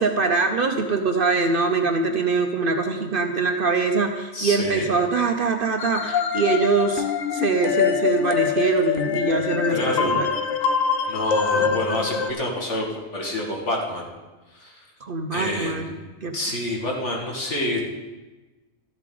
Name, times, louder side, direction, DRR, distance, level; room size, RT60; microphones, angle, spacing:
voice 1, 0.0-7.1 7.3-10.3 11.5-12.2 15.0-15.9 16.2-16.4, right 4 dB, 50° right, 5 dB, 0.8 m, -23 dB
voice 2, 4.3-4.9 9.7-10.1 11.1-12.9 13.1-14.0 14.5-14.7 15.3-16.0 16.3-17.8, left 1 dB, 60° left, -1 dB, 2.3 m, -27 dB
sound 1, 5.8-12.3, left 7 dB, 85° left, 1.1 m, -24 dB
13.0 x 11.0 x 3.9 m, 1.2 s
omnidirectional pair, 1.3 m